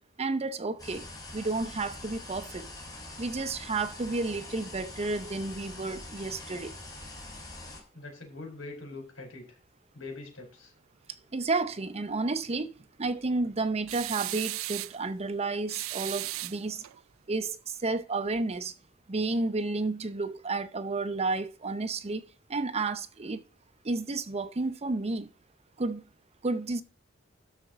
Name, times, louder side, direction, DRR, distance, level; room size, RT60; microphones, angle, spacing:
voice 1, 0.2-1.1 1.3-2.7 3.2-6.7 11.1-12.7 13.0-16.8 17.3-18.7 19.1-22.2 22.5-23.4 23.8-25.3 25.8-26.0 26.4-26.8, right 3 dB, 30° right, 0.7 m, -31 dB
sound 1, 0.8-7.8, left 2 dB, 20° left, 4.1 m, -44 dB
voice 2, 7.9-9.4 9.9-10.7, left 3 dB, 70° left, 4.9 m, -43 dB
sound 2, 13.9-15.0 15.7-17.0, right 18 dB, 75° right, 0.4 m, -36 dB
13.0 x 5.1 x 5.1 m
head